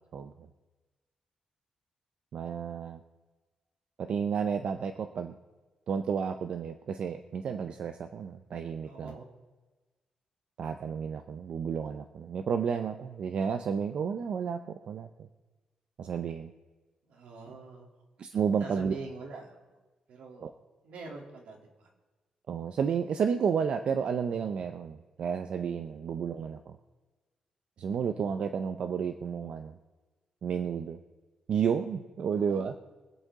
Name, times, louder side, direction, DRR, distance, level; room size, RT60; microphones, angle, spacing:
voice 1, 2.3-3.0 4.0-5.3 5.9-9.2 10.6-15.3 16.0-16.5 18.2-18.9 20.4-20.5 22.5-26.8 27.8-29.7 30.4-31.0 31.5-32.7, right 7 dB, 50° right, 7 dB, 0.6 m, -31 dB
voice 2, 8.8-9.3 17.0-18.0 18.6-19.8 20.1-20.5 20.8-21.9 25.8-26.2 32.3-32.7, right 3 dB, 75° right, 0 dB, 2.9 m, -45 dB
24.5 x 8.3 x 3.7 m, 1.2 s
wide cardioid pair, 175°, 2 cm